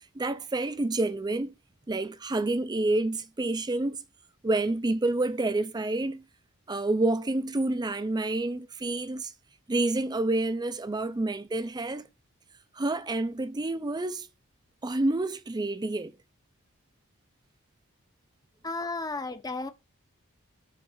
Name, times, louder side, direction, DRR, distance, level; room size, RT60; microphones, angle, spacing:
voice 1, 0.1-1.5 1.9-4.0 4.4-6.2 6.7-9.3 9.7-12.1 12.8-14.3 14.8-16.1, right 2 dB, 20° right, 0.5 m, -28 dB
voice 2, 18.6-19.7, left 3 dB, 15° left, 0.7 m, -33 dB
6.6 x 3.2 x 5.6 m
head